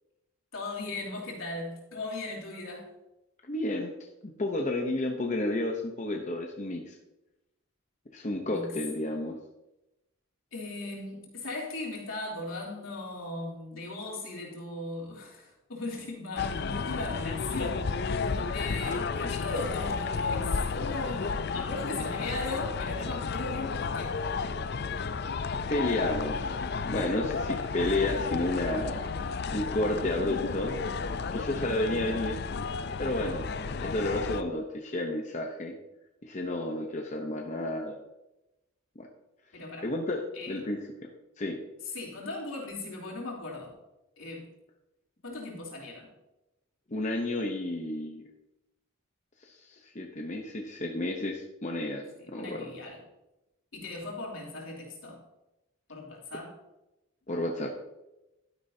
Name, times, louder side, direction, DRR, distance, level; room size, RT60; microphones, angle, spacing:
voice 1, 0.5-2.9 8.3-8.7 10.5-24.2 39.5-39.9 40.3-40.6 41.9-43.7 44.2-44.5 45.2-46.1 52.3-53.0 53.7-55.2 55.9-56.5, left 2 dB, 80° left, -3 dB, 3.1 m, -38 dB
voice 2, 3.4-3.9 4.2-6.9 8.1-9.4 25.7-29.0 29.5-30.8 31.3-32.4 33.0-33.4 33.8-35.8 36.2-38.0 39.0-39.1 39.8-40.9 41.4-41.6 46.9-48.2 49.4-52.0 52.3-52.7 57.3-57.7, left 1 dB, 35° left, 2 dB, 0.8 m, -31 dB
sound 1, 16.4-34.4, left 4 dB, 50° left, 0.4 m, -32 dB
12.0 x 9.7 x 2.7 m, 0.96 s
head